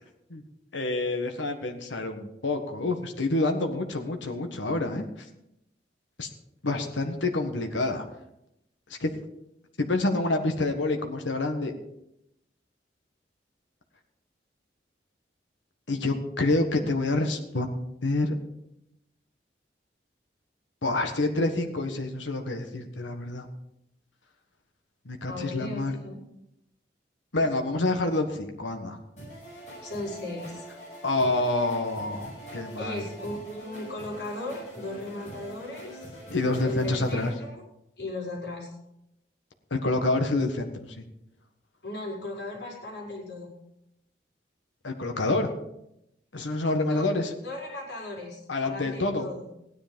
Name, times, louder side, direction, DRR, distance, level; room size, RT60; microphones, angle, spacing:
voice 1, 0.7-5.3 6.2-6.3 6.6-8.0 9.0-9.1 9.8-11.7 15.9-18.3 20.8-23.5 25.0-25.9 27.3-29.0 31.0-33.1 36.3-37.3 39.7-41.0 44.8-45.5 46.3-47.3 48.5-49.3, left 2 dB, 90° left, 5 dB, 1.5 m, -27 dB
voice 2, 25.3-26.2 29.8-30.7 32.8-36.1 36.6-37.6 38.0-38.7 41.8-43.5 46.9-47.1 47.4-49.5, left 1 dB, 70° left, -3 dB, 5.3 m, -37 dB
sound 1, 29.2-37.3, equal, 40° left, 7.0 m, -44 dB
16.0 x 10.0 x 5.2 m, 0.83 s
head